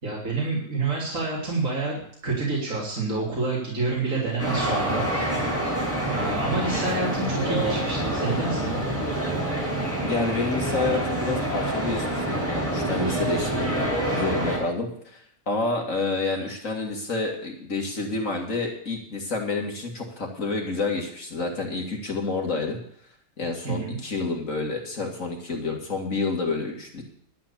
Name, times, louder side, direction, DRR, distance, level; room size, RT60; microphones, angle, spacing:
voice 1, 0.0-5.0 6.1-8.8 23.6-24.0, right 3 dB, 55° right, -6 dB, 3.7 m, -28 dB
sound 1, 4.4-14.6, right 1 dB, 10° right, 5.7 m, -27 dB
voice 2, 10.0-13.8 14.1-15.2 15.5-22.8 23.4-27.0, left 3 dB, 55° left, 1 dB, 2.4 m, -29 dB
11.5 x 9.2 x 7.0 m, 0.65 s
omnidirectional pair, 1.7 m